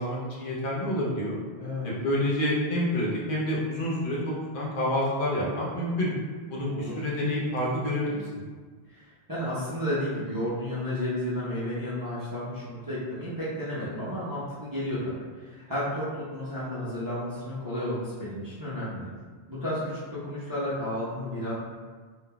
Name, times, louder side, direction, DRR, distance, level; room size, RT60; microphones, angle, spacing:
voice 1, 0.0-1.4 1.8-6.1 6.5-8.4, left 1 dB, 60° left, -5 dB, 0.9 m, -28 dB
voice 2, 1.6-1.9 6.7-7.0 8.9-9.0 9.3-19.1 19.5-21.5, left 1 dB, 25° right, -10 dB, 0.6 m, -32 dB
3.6 x 2.7 x 2.2 m, 1.5 s
omnidirectional pair, 1.1 m